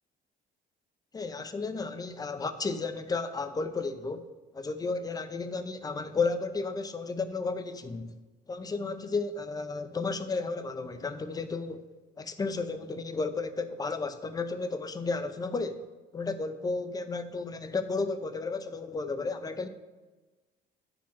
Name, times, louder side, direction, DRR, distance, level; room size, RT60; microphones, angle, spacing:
voice 1, 1.1-4.3 4.5-8.1 8.5-11.8 12.2-15.8 16.1-19.7, left 4 dB, 20° left, 10 dB, 0.7 m, -33 dB
8.8 x 5.0 x 5.9 m, 1.2 s
cardioid pair, 110°, 17 cm